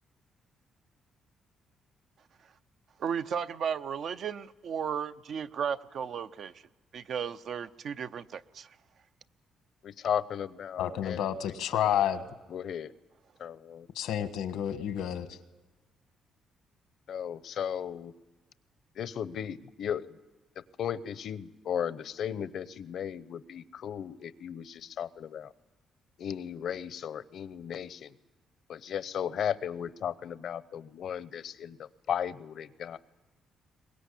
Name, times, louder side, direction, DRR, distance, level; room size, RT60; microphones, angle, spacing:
voice 1, 3.0-6.5 6.9-8.7, right 7 dB, 65° right, 10 dB, 0.7 m, -34 dB
voice 2, 9.8-11.2 11.4-11.5 12.5-12.9 13.4-13.9 17.1-18.1 19.0-20.0 20.8-25.5 26.2-28.1 28.7-33.0, left 8 dB, 65° left, 15 dB, 0.8 m, -35 dB
voice 3, 10.8-12.2 13.9-15.4, left 10 dB, 85° left, 10 dB, 1.4 m, -30 dB
23.0 x 20.5 x 8.4 m, 1.2 s
cardioid pair, 90°, 0 cm